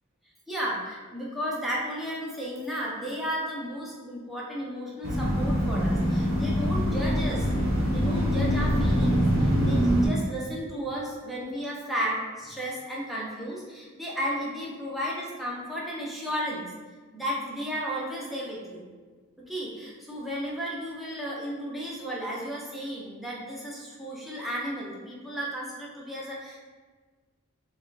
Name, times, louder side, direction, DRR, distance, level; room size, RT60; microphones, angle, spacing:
voice 1, 0.5-7.5 7.9-16.7 17.1-18.9 19.4-26.6, equal, ahead, -5 dB, 0.7 m, -34 dB
sound 1, 5.0-10.1, equal, 65° right, 1.1 m, -24 dB
4.9 x 2.3 x 3.9 m, 1.4 s
head